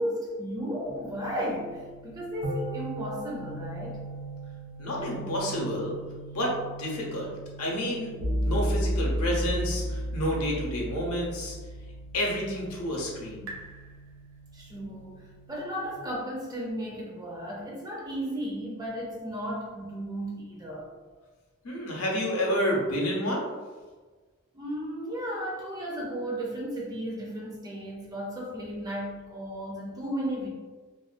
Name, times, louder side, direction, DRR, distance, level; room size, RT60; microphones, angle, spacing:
voice 1, 0.0-4.0 14.5-20.9 24.5-30.5, equal, 15° right, -3 dB, 0.4 m, -34 dB
sound 1, 0.9-16.0, equal, 65° right, 0.6 m, -35 dB
voice 2, 4.8-6.0 6.3-7.3 7.6-8.1 8.4-11.6 12.1-13.5 21.6-23.5, equal, 85° left, -2 dB, 0.7 m, -29 dB
2.4 x 2.1 x 2.4 m, 1.4 s
head